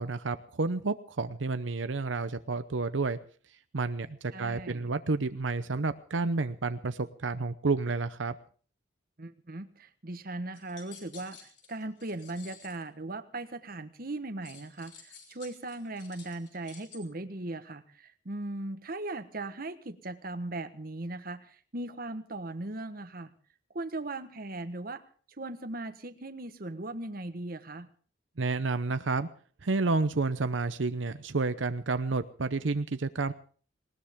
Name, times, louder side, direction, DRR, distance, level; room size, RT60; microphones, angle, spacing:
voice 1, 0.0-3.2 3.7-8.4 28.4-29.3 29.6-33.3, right 3 dB, 90° right, 11 dB, 0.8 m, -30 dB
voice 2, 4.3-4.9 9.2-23.3 23.7-25.0 25.4-27.9, right 2 dB, 50° right, 10 dB, 1.3 m, -38 dB
sound 1, 10.5-12.8 14.4-17.0, left 6 dB, 65° left, 4.6 m, -52 dB
19.5 x 19.0 x 3.7 m, 0.43 s
head